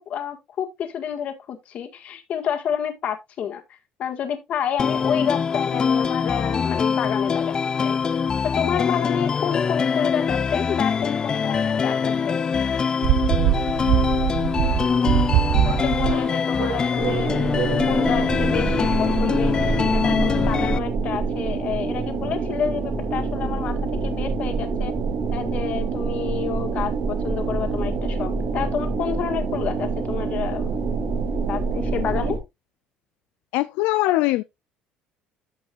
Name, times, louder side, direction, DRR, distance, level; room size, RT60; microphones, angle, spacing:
voice 1, 0.1-3.6 4.0-8.0 8.4-12.4 15.6-19.6 19.9-24.9 25.3-30.8 31.5-32.4, left 8 dB, 50° left, 1.8 m, -29 dB
sound 1, 4.8-20.8, left 6 dB, 25° left, 0.4 m, -23 dB
sound 2, 13.0-17.9 18.3-18.5, right 14 dB, 65° right, 0.4 m, -23 dB
sound 3, 17.0-32.4, right 4 dB, 45° right, 2.4 m, -26 dB
voice 2, 33.5-34.4, left 18 dB, 85° left, 0.4 m, -21 dB
14.0 x 5.4 x 2.5 m
cardioid pair, 140°, 3 cm